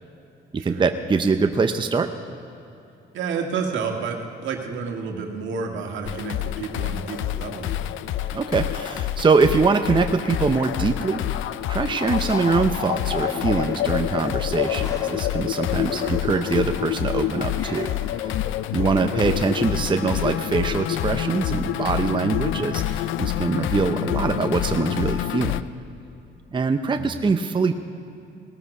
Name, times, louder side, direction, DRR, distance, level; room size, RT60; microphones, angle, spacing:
voice 1, 0.6-2.1 8.3-11.4 11.7-17.9 18.2-18.3 18.7-25.6 26.5-27.8, right 4 dB, 25° right, 7 dB, 0.7 m, -23 dB
voice 2, 3.1-7.9 16.0-16.2 19.0-19.2 27.0-27.2, right 5 dB, 75° right, 2 dB, 1.8 m, -30 dB
sound 1, 6.0-25.6, left 13 dB, 80° left, 0.4 m, -27 dB
sound 2, 12.2-19.2, left 1 dB, 15° left, 1.5 m, -41 dB
18.5 x 13.5 x 4.9 m, 2.8 s
cardioid pair, 90°, 20 cm